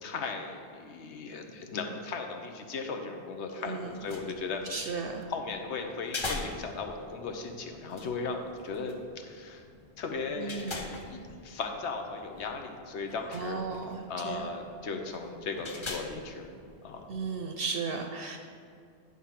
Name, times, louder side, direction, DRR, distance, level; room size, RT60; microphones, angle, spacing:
voice 1, 0.0-5.0 5.3-9.6 10.0-13.6 14.1-16.5 16.8-17.1, left 4 dB, 85° left, 4 dB, 1.1 m, -37 dB
voice 2, 3.6-3.9 4.7-5.3 10.4-10.9 13.3-14.5 17.1-18.4, right 4 dB, 65° right, 4 dB, 0.7 m, -35 dB
sound 1, 3.9-17.3, left 2 dB, 35° left, 0.6 m, -44 dB
9.6 x 3.7 x 5.8 m, 2.4 s
omnidirectional pair, 1.1 m